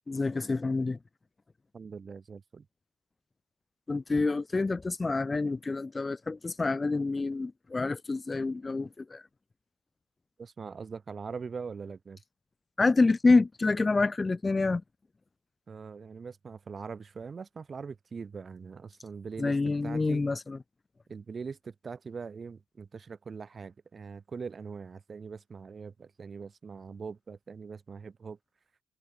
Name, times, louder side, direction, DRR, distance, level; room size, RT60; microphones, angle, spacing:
voice 1, 0.1-1.0 3.9-9.2 12.8-14.8 19.4-20.6, left 3 dB, 25° left, 0.6 m, -27 dB
voice 2, 1.7-2.7 10.4-12.2 15.7-19.6 19.8-20.2 21.1-28.4, right 5 dB, 40° right, 6.0 m, -42 dB
cardioid pair, 90°, 0 cm